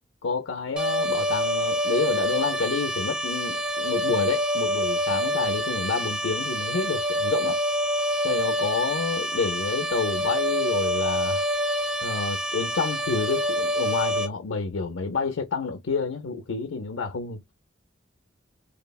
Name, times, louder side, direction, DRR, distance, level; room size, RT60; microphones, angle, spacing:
voice 1, 0.2-7.6 8.2-11.4 12.0-17.6, left 4 dB, 85° left, 0.6 m, -29 dB
sound 1, 0.8-14.3, equal, 5° right, 0.4 m, -27 dB
3.2 x 2.0 x 2.2 m
head